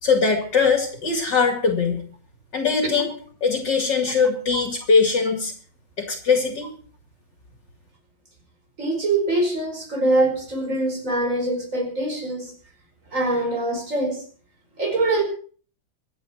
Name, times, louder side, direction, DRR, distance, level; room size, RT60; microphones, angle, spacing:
voice 1, 0.0-2.0 2.5-3.1 3.4-5.5 6.0-6.7, left 5 dB, 55° left, 4 dB, 3.1 m, -21 dB
voice 2, 8.8-12.5 13.1-14.2 14.8-15.2, right 2 dB, 35° right, 3 dB, 5.2 m, -23 dB
25.0 x 9.3 x 4.5 m, 0.43 s
omnidirectional pair, 2.3 m